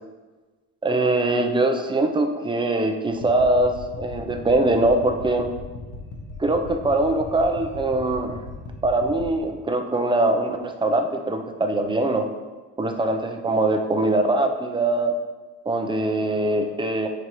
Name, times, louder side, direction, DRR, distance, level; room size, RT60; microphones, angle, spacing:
voice 1, 0.8-5.5 6.4-8.4 8.8-12.3 12.8-15.1 15.7-17.1, right 2 dB, 15° right, 5 dB, 0.5 m, -22 dB
sound 1, 3.1-9.4, left 3 dB, 80° left, 1.6 m, -38 dB
9.5 x 5.0 x 3.0 m, 1.3 s
cardioid pair, 140°, 32 cm